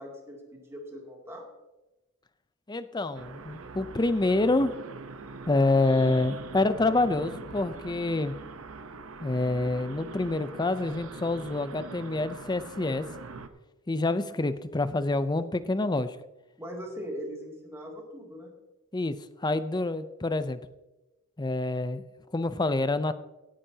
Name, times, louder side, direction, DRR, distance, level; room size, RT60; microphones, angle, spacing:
voice 1, 0.0-1.5 16.6-18.5, equal, 10° right, -1 dB, 2.6 m, -40 dB
voice 2, 2.7-4.8 5.5-8.3 9.2-13.1 13.9-16.2 18.9-19.1 19.4-20.6 21.4-22.0 22.3-23.1, left 2 dB, 20° left, 13 dB, 0.5 m, -27 dB
sound 1, 3.1-13.5, right 3 dB, 70° right, 0.9 m, -43 dB
16.5 x 10.0 x 2.8 m, 1.0 s
head